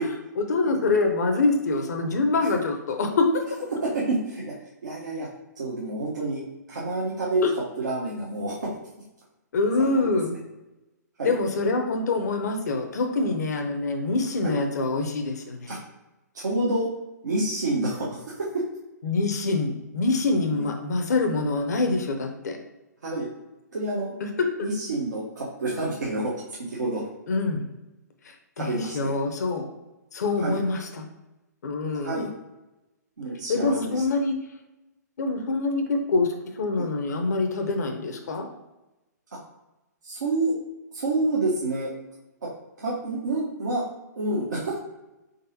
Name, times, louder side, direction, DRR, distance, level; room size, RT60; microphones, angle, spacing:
voice 1, 0.4-3.4 7.4-7.5 9.5-10.3 11.2-15.7 19.0-22.6 24.2-24.5 27.3-27.7 28.2-29.6 30.1-31.0 31.6-32.3 33.5-34.3 35.2-38.5, left 3 dB, 65° left, 4 dB, 0.6 m, -25 dB
voice 2, 3.8-4.4 4.8-5.3 5.6-6.4 6.7-7.5 7.8-8.7 9.8-10.2 11.2-11.3 14.4-14.5 15.7-15.8 16.3-16.9 17.2-18.6 20.5-20.6 23.0-23.3 23.7-24.1 24.6-26.3 26.6-27.0 28.6-29.1 30.4-30.6 31.9-32.3 33.2-34.0 36.8-36.9 40.0-40.5 40.9-41.9 42.8-43.8 44.2-44.8, right 2 dB, 75° right, -6 dB, 0.9 m, -28 dB
3.9 x 3.7 x 2.6 m, 1.0 s
figure-of-eight pair, 125°, 10 cm